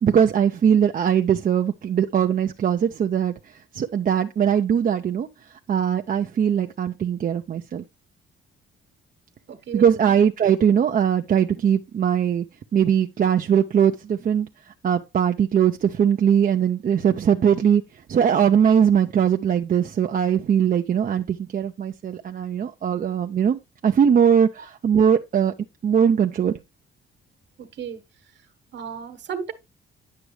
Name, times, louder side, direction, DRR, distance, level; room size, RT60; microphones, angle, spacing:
voice 1, 0.0-7.8 9.7-12.4 12.7-17.8 18.1-25.5 25.8-26.6, right 8 dB, 45° right, 0.6 m, -21 dB
voice 2, 9.5-10.0 27.6-28.0 28.7-29.5, right 7 dB, 60° right, 1.4 m, -34 dB
9.5 x 6.0 x 3.2 m
cardioid pair, 90°, 20 cm